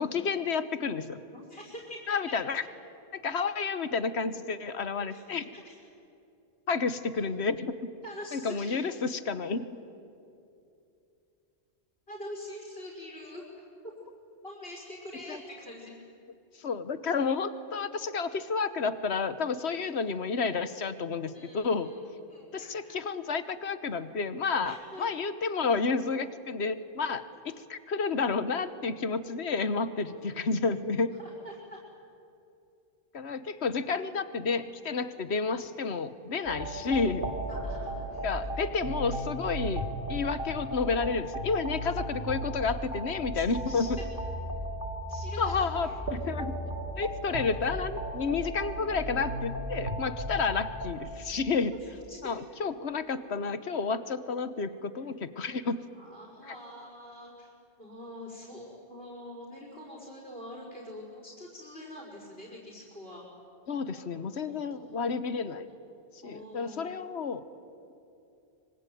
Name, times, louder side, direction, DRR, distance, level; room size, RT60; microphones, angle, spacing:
voice 1, 0.0-1.2 2.1-2.6 3.1-5.5 6.7-7.7 8.3-9.7 15.3-15.4 16.6-21.9 22.5-31.2 33.1-37.3 38.2-39.8 40.1-44.0 45.4-46.5 47.0-51.7 52.2-55.9 56.5-56.6 63.7-65.7 66.2-67.4, left 4 dB, 80° left, 12 dB, 1.4 m, -31 dB
voice 2, 1.3-2.2 5.1-5.2 5.5-5.8 8.0-8.8 12.1-13.5 13.8-13.9 14.4-16.0 19.6-19.8 21.3-23.0 24.6-25.1 27.3-27.4 30.1-30.3 31.2-31.8 37.5-38.3 43.3-43.9 45.1-46.0 51.8-52.3 55.9-57.5 57.8-63.2 63.8-65.1 66.2-67.0, left 1 dB, 65° left, -2 dB, 5.5 m, -45 dB
sound 1, 36.5-50.9, right 1 dB, 55° right, 2.7 m, -35 dB
25.0 x 25.0 x 9.3 m, 2.6 s
omnidirectional pair, 1.1 m